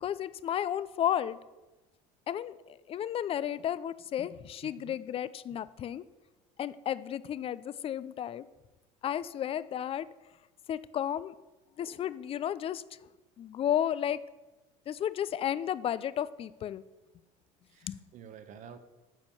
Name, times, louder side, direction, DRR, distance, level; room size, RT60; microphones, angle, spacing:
voice 1, 0.0-1.4 2.3-6.0 6.6-8.5 9.0-10.1 10.7-11.4 11.8-12.8 13.4-14.2 14.9-16.8 17.8-18.0, left 10 dB, 35° left, 17 dB, 0.5 m, -33 dB
voice 2, 4.6-5.0 17.7-18.8, right 8 dB, 50° right, 10 dB, 1.1 m, -50 dB
10.5 x 4.4 x 7.1 m, 1.1 s
supercardioid pair, 110°, 17 cm